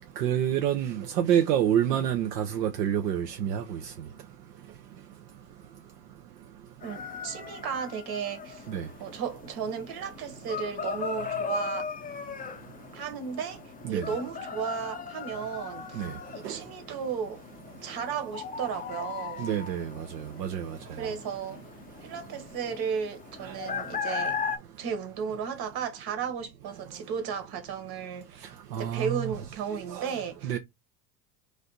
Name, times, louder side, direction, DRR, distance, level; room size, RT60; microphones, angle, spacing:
voice 1, 0.2-3.8 8.7-8.8 13.8-14.0 16.0-16.1 16.4-16.5 19.4-21.1 28.7-29.3 29.9-30.1 30.4-30.6, right 10 dB, 80° right, 0.7 m, -28 dB
sound 1, 6.8-24.6, left 6 dB, 20° left, 0.6 m, -38 dB
voice 2, 6.8-8.7 9.0-11.9 12.9-13.6 13.9-16.0 16.3-17.4 17.8-19.5 21.0-21.6 22.0-24.4 24.8-28.5 28.8-30.6, right 7 dB, 50° right, 1.5 m, -34 dB
3.2 x 2.6 x 4.1 m
hypercardioid pair, 75°, 48 cm